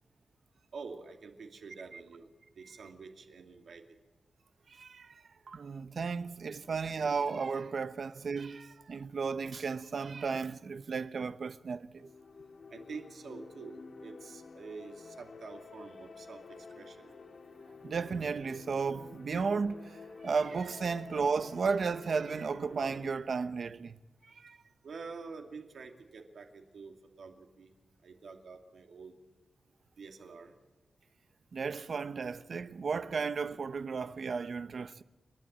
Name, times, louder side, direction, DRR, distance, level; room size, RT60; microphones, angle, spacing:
voice 1, 0.7-2.3 2.6-3.8 12.7-17.1 24.8-27.7 28.0-29.1 30.0-30.5, right 4 dB, 90° right, 2.5 m, -47 dB
voice 2, 4.7-12.1 17.8-24.0 24.3-24.6 31.5-35.0, right 5 dB, 65° right, 0.9 m, -34 dB
sound 1, 12.0-23.1, left 4 dB, 55° left, 1.6 m, -50 dB
29.0 x 11.5 x 8.9 m
wide cardioid pair, 140°, 0 cm